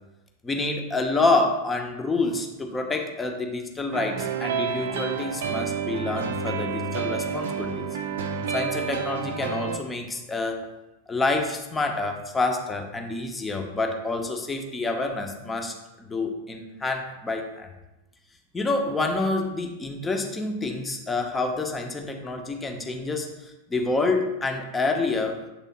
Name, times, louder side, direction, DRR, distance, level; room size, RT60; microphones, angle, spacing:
voice 1, 0.4-7.9 8.5-10.7 11.1-17.7 18.5-25.4, left 3 dB, 15° left, 3 dB, 0.8 m, -28 dB
sound 1, 3.9-9.8, right 6 dB, 60° right, 0.5 m, -29 dB
7.3 x 3.5 x 4.1 m, 1.0 s
figure-of-eight pair, 90°, 0 cm